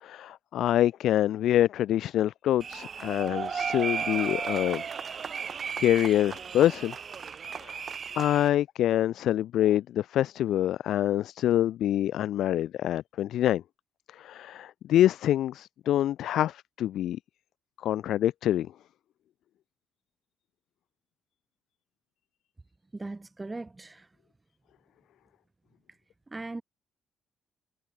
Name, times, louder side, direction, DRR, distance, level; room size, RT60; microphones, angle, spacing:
voice 1, 0.0-4.8 5.4-6.9 7.5-7.9 8.1-13.6 14.1-17.2 17.8-18.7, left 12 dB, 60° left, 0.6 m, -26 dB
sound 1, 2.6-8.5, right 6 dB, 45° right, 2.6 m, -34 dB
voice 2, 22.9-24.1 26.3-26.6, right 2 dB, 20° right, 5.0 m, -39 dB
figure-of-eight pair, 45°, 0 cm